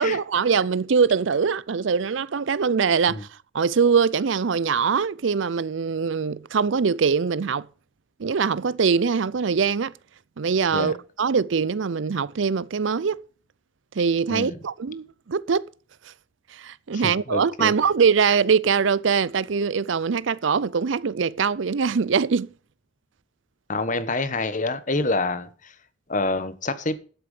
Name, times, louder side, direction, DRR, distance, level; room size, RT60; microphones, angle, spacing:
voice 1, 0.0-7.7 8.2-9.9 10.4-13.2 13.9-15.7 16.1-16.2 16.5-22.5, right 6 dB, 70° right, 0.5 m, -23 dB
voice 2, 16.9-17.7 23.7-25.7 26.1-27.0, left 2 dB, 40° left, 1.2 m, -27 dB
12.5 x 7.9 x 5.0 m
head